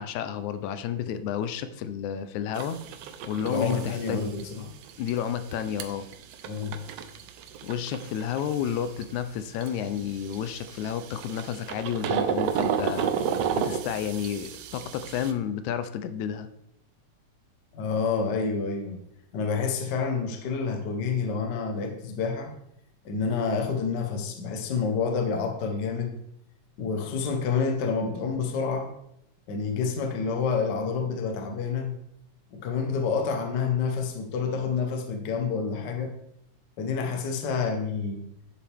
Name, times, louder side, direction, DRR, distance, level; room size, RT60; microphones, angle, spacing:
voice 1, 0.0-2.8 3.2-4.3 5.0-6.1 7.6-13.1 13.6-16.5, left 9 dB, 85° left, 11 dB, 2.0 m, -31 dB
sound 1, 2.5-15.3, right 8 dB, 75° right, 1.4 m, -33 dB
voice 2, 3.4-4.7 6.5-6.8 17.7-19.0 19.3-22.5 23.0-26.2 26.8-28.9 29.5-32.0 32.5-36.1 36.8-38.2, left 5 dB, 60° left, 4 dB, 1.1 m, -28 dB
9.2 x 7.3 x 3.5 m, 0.78 s
omnidirectional pair, 3.3 m